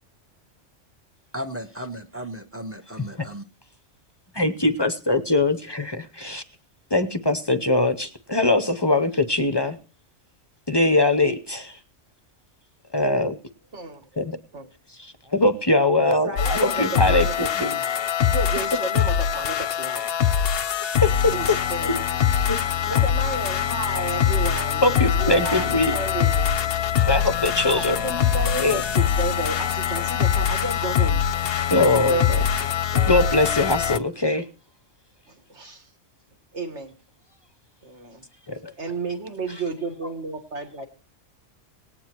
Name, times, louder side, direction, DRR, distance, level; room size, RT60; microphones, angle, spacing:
voice 1, 1.3-3.4, equal, 10° right, 0.8 m, -35 dB
voice 2, 4.3-6.4 6.9-9.8 10.7-11.8 12.9-13.4 14.2-14.4 14.9-17.3 17.6-17.7 21.0-21.6 22.3-22.6 22.9-23.0 24.8-25.9 27.1-28.0 28.6-28.8 31.7-32.5 33.1-34.5 38.5-38.7, left 2 dB, 25° left, 0.6 m, -22 dB
voice 3, 13.7-14.1 14.5-14.7 16.0-17.9 18.3-20.0 21.3-22.0 22.5-24.9 25.2-26.5 27.7-31.2 31.6-32.7 32.9-33.1 35.3-35.8 36.5-36.9 37.8-38.2 38.8-40.9, right 2 dB, 65° right, 1.9 m, -32 dB
sound 1, 16.4-34.0, left 8 dB, 55° left, 0.8 m, -23 dB
19.0 x 9.3 x 3.0 m
omnidirectional pair, 1.3 m